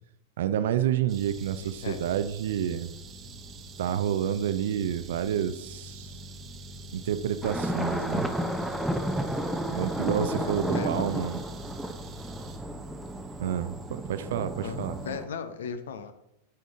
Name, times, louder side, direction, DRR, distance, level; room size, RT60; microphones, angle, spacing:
voice 1, 0.4-2.9 3.8-6.1 6.9-8.3 9.7-11.4 13.4-15.0, right 10 dB, 55° right, 12 dB, 0.6 m, -29 dB
sound 1, 1.1-15.2, right 2 dB, 30° right, 1.1 m, -44 dB
voice 2, 1.6-2.0 10.1-11.2 14.6-16.1, left 6 dB, 60° left, 10 dB, 0.9 m, -37 dB
sound 2, 7.4-15.3, equal, ahead, 0.7 m, -32 dB
12.0 x 5.1 x 3.7 m, 0.82 s
figure-of-eight pair, 90°, 0 cm